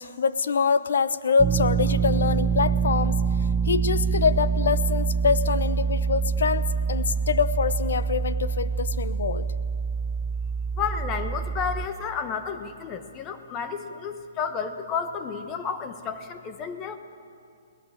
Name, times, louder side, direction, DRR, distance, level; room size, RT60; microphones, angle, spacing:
voice 1, 0.0-3.2 3.6-9.5, left 5 dB, 75° left, 15 dB, 0.9 m, -25 dB
sound 1, 1.4-11.9, right 6 dB, 20° right, 0.5 m, -25 dB
voice 2, 10.8-17.0, left 6 dB, 25° left, 9 dB, 1.1 m, -31 dB
22.5 x 17.5 x 7.3 m, 2.5 s
hypercardioid pair, 145°, 0 cm